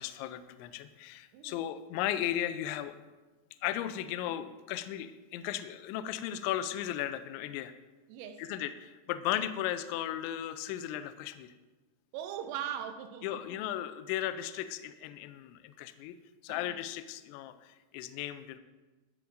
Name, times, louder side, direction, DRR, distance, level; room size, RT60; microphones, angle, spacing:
voice 1, 0.0-3.0 3.6-7.7 8.4-11.5 13.2-16.2 16.4-18.6, left 12 dB, 85° left, 2.7 m, -36 dB
voice 2, 1.3-1.7 8.1-8.4 12.1-13.6 16.5-16.8, right 9 dB, 85° right, 3.4 m, -40 dB
13.5 x 13.0 x 2.6 m
omnidirectional pair, 5.7 m